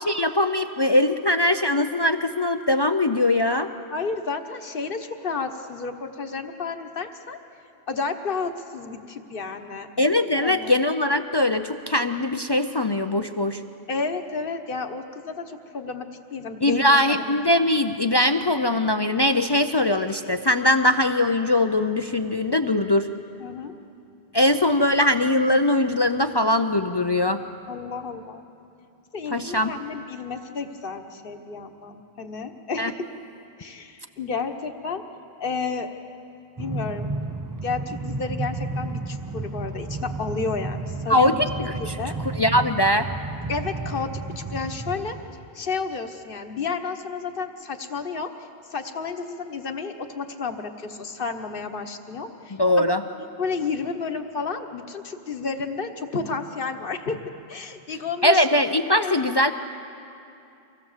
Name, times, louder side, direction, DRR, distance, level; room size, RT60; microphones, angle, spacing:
voice 1, 0.1-3.7 10.0-13.6 16.6-23.1 24.3-27.4 29.3-29.7 32.8-32.9 41.1-41.5 41.9-42.0 42.3-43.1 52.6-53.0 58.2-59.5, left 1 dB, 40° left, 8 dB, 0.4 m, -21 dB
voice 2, 3.9-7.4 7.9-9.9 10.4-10.8 13.9-17.3 17.6-17.9 23.4-23.7 27.7-28.4 29.1-33.1 33.6-35.0 35.4-35.9 36.6-37.1 37.6-42.2 43.5-45.2 45.5-52.6 53.4-57.2 57.5-58.5 58.9-59.2, left 4 dB, 55° left, 7 dB, 1.3 m, -31 dB
Train, 36.6-45.4, right 3 dB, 25° right, 0.4 m, -32 dB
24.5 x 17.0 x 7.3 m, 2.6 s
omnidirectional pair, 1.1 m